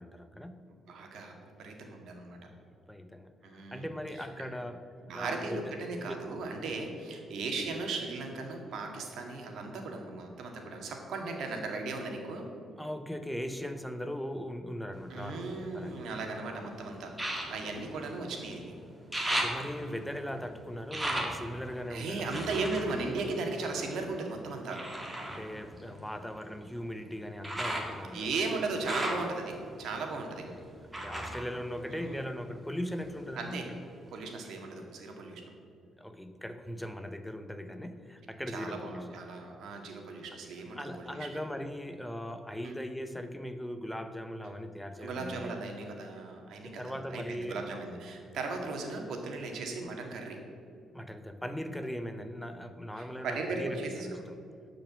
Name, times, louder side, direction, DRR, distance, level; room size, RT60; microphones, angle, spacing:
voice 1, 0.0-0.7 2.4-4.8 5.1-5.7 6.0-6.1 12.8-16.1 19.3-22.3 25.3-28.3 30.5-30.6 31.0-33.8 36.0-39.2 40.8-45.6 46.6-47.6 50.9-54.5, equal, 5° left, 8 dB, 0.6 m, -39 dB
voice 2, 0.7-2.4 3.4-3.9 4.4-4.5 5.1-12.5 15.1-18.7 21.9-24.8 28.1-30.5 31.9-32.2 33.4-33.6 34.1-35.4 38.5-41.3 42.6-42.7 45.0-50.4 53.0-54.2, right 3 dB, 75° right, 3 dB, 1.8 m, -37 dB
sound 1, 14.9-16.3 17.1-18.6 18.9-24.1 24.7-32.5 32.9-33.7 34.2-34.3, right 1 dB, 15° right, 1.8 m, -38 dB
12.0 x 5.1 x 7.4 m, 2.4 s
cardioid pair, 95°, 0 cm